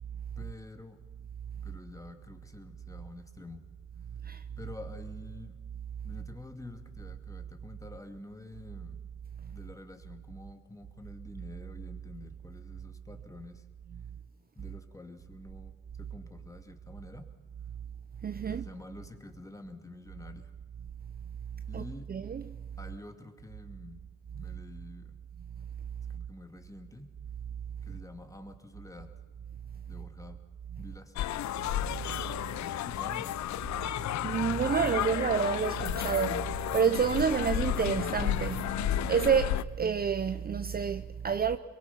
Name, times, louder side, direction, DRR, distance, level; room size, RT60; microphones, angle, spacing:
voice 1, 0.4-1.0 1.6-3.7 4.6-5.6 6.0-9.0 9.5-13.6 14.6-17.3 18.4-20.5 21.7-22.1 22.8-24.0 24.3-25.2 26.1-27.1 27.8-29.1 29.9-30.4 30.8-31.5 32.5-33.3, left 2 dB, 10° left, 2.2 m, -48 dB
voice 2, 18.2-18.7 21.7-22.5 34.2-41.6, right 6 dB, 30° right, 0.7 m, -29 dB
sound 1, 31.2-39.6, left 12 dB, 65° left, 0.6 m, -32 dB
23.0 x 22.5 x 5.8 m
cardioid pair, 90°, 30 cm